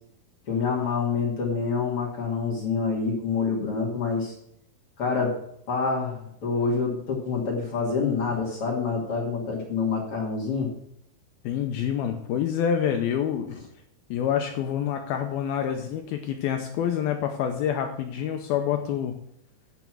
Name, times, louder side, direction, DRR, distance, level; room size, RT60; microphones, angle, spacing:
voice 1, 0.5-4.3 5.0-5.4 5.7-10.7, left 5 dB, 40° left, -3 dB, 2.4 m, -27 dB
voice 2, 11.4-13.6 14.1-19.1, left 9 dB, 80° left, 4 dB, 2.3 m, -27 dB
9.2 x 7.0 x 6.1 m, 0.72 s
omnidirectional pair, 4.9 m